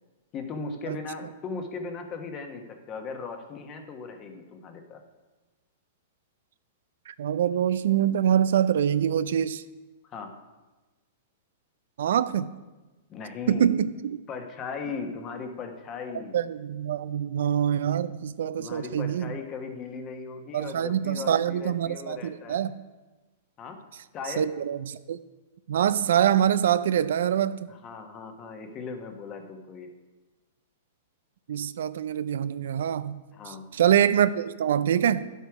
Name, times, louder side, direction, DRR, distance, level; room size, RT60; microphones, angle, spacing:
voice 1, 0.3-5.0 10.0-10.4 13.1-13.8 14.3-16.4 18.6-22.6 23.6-23.8 24.1-24.5 27.7-29.9 33.3-33.7, left 4 dB, 30° left, 5 dB, 1.2 m, -38 dB
voice 2, 7.1-9.6 12.0-12.5 13.5-14.2 16.3-19.4 20.5-22.7 24.4-25.2 25.7-27.6 31.5-35.2, right 9 dB, 75° right, 15 dB, 0.4 m, -25 dB
10.5 x 8.2 x 4.8 m, 1.2 s
hypercardioid pair, 145°, 0 cm